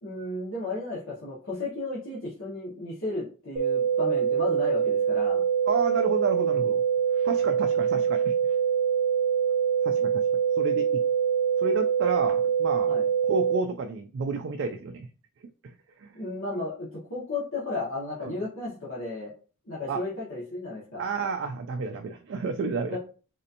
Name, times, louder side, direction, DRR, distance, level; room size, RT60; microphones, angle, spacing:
voice 1, 0.0-5.4 12.9-13.1 16.1-19.3 19.7-21.0 22.9-23.0, left 2 dB, 60° left, -8 dB, 1.2 m, -34 dB
sound 1, 3.6-13.6, right 7 dB, 40° right, 1.0 m, -24 dB
voice 2, 5.7-6.8 7.2-8.4 9.8-10.2 10.6-11.0 11.6-13.0 13.2-15.1 16.0-16.1 18.2-18.4 19.9-20.0 21.0-23.0, right 4 dB, 55° right, 6 dB, 0.3 m, -30 dB
4.1 x 2.7 x 2.5 m, 0.38 s
head